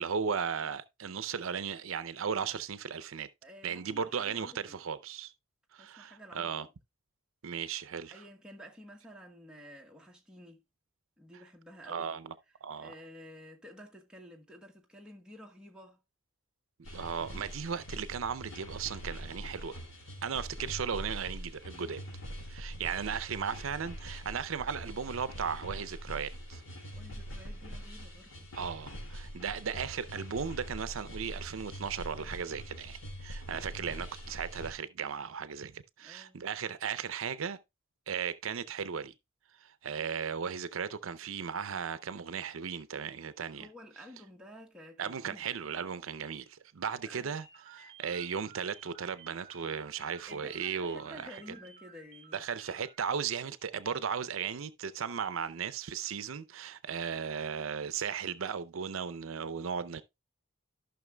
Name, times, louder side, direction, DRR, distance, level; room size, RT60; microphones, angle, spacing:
voice 1, 0.0-3.3 3.6-5.3 5.7-6.7 7.4-8.2 11.8-12.3 12.6-12.9 16.9-19.8 20.2-22.0 22.5-26.6 28.6-37.6 38.1-39.1 39.6-43.7 45.0-51.4 52.3-60.0, right 6 dB, 75° right, 0.5 m, -36 dB
voice 2, 3.4-4.8 5.8-6.6 8.1-10.6 11.2-12.1 12.8-16.0 27.0-28.5 36.0-36.4 43.5-45.4 47.0-47.3 50.3-52.4, equal, 5° right, 1.1 m, -51 dB
sound 1, 16.8-34.7, equal, 80° left, 2.6 m, -44 dB
sound 2, 47.4-53.1, right 5 dB, 25° right, 2.2 m, -55 dB
14.5 x 5.8 x 2.2 m
head